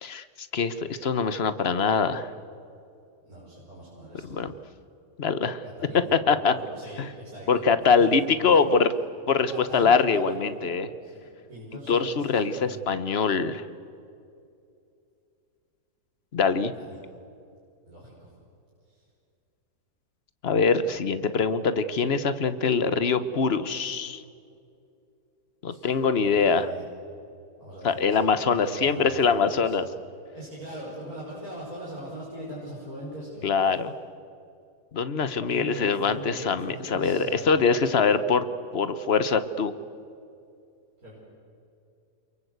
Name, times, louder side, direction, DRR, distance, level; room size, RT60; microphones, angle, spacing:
voice 1, 0.0-2.3 4.3-4.5 5.2-5.6 5.9-6.5 7.0-7.1 7.5-8.9 9.3-10.9 11.9-13.6 16.3-16.7 20.4-24.2 25.6-26.7 27.8-29.9 33.4-33.9 34.9-38.4 38.7-39.7, left 5 dB, 45° left, 12 dB, 1.2 m, -23 dB
voice 2, 3.2-4.4 5.6-8.8 9.5-10.7 11.0-12.9 16.7-17.0 17.9-18.3 18.9-19.0 25.7-26.8 27.6-28.2 28.4-29.8 30.3-33.5 35.4-37.7 41.0-41.2, equal, 60° right, -6 dB, 6.3 m, -41 dB
29.5 x 23.5 x 8.1 m, 2.5 s
omnidirectional pair, 1.7 m